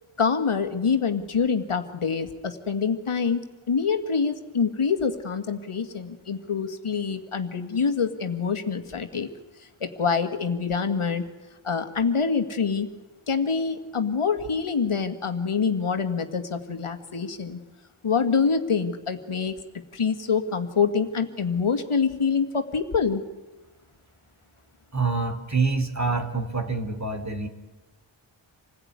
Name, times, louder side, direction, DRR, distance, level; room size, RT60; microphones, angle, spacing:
voice 1, 0.2-3.4 3.7-9.3 9.6-11.3 11.6-12.9 13.3-17.6 18.0-19.6 19.9-23.2, left 5 dB, 80° left, 7 dB, 2.0 m, -25 dB
voice 2, 24.9-27.5, right 4 dB, 35° right, 6 dB, 3.2 m, -26 dB
27.0 x 16.0 x 9.6 m, 1.2 s
wide cardioid pair, 60°, 49 cm